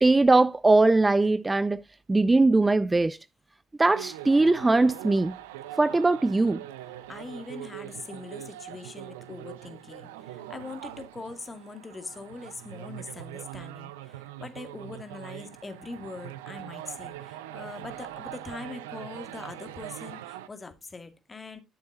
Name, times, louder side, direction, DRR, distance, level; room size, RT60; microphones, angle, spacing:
voice 1, 0.0-1.8 2.1-3.2 3.8-5.4 5.8-6.6, right 2 dB, 20° right, 0.4 m, -21 dB
sound 1, 3.9-20.5, right 13 dB, 75° right, 0.6 m, -42 dB
voice 2, 7.1-21.6, left 3 dB, 25° left, 2.0 m, -42 dB
13.0 x 6.9 x 2.5 m
figure-of-eight pair, 50°, 0 cm